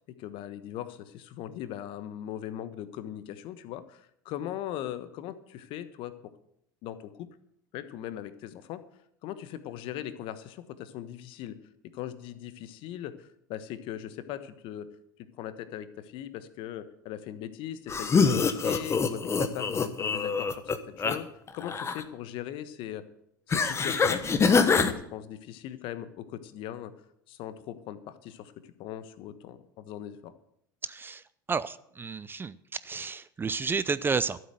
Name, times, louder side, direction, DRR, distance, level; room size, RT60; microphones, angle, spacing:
voice 1, 0.2-6.1 6.8-7.3 7.7-8.8 9.2-11.6 11.9-14.9 15.4-21.3 21.5-23.0 23.5-26.9 27.3-28.5 28.8-30.3, left 11 dB, 50° left, 12 dB, 1.2 m, -39 dB
sound 1, 17.9-21.2 21.5-22.0 23.5-24.9, left 5 dB, 25° left, 1.3 m, -25 dB
voice 2, 30.8-32.6 32.8-34.4, right 5 dB, 20° right, 16 dB, 0.5 m, -31 dB
12.5 x 7.7 x 7.9 m, 0.73 s
hypercardioid pair, 80°, 11 cm